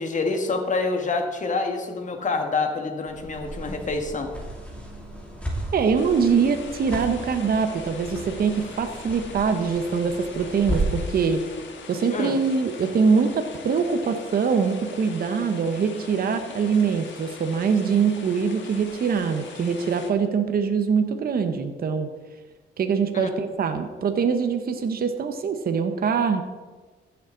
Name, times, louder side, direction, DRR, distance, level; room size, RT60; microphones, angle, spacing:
voice 1, 0.0-4.3 12.1-12.4 23.1-23.3, left 3 dB, 40° left, 4 dB, 1.6 m, -27 dB
sound 1, 3.1-11.1, right 1 dB, 5° left, 2.8 m, -34 dB
voice 2, 5.7-11.5 11.9-22.1 22.8-26.4, right 5 dB, 50° right, 7 dB, 1.0 m, -23 dB
sound 2, 6.0-20.1, left 5 dB, 70° left, 1.4 m, -42 dB
14.5 x 7.0 x 3.9 m, 1.3 s
cardioid pair, 90°, 20 cm